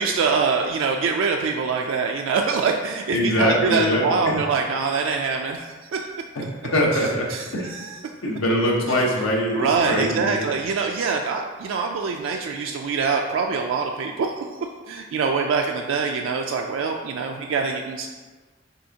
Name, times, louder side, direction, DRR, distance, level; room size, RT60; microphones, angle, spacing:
voice 1, 0.0-6.1 6.9-8.0 9.5-14.4 14.9-18.1, right 5 dB, 70° right, 2 dB, 0.3 m, -24 dB
voice 2, 3.1-4.3 6.6-7.3 7.5-7.7 8.2-10.5, left 1 dB, 90° left, -2 dB, 0.8 m, -22 dB
5.4 x 3.5 x 2.8 m, 1.4 s
head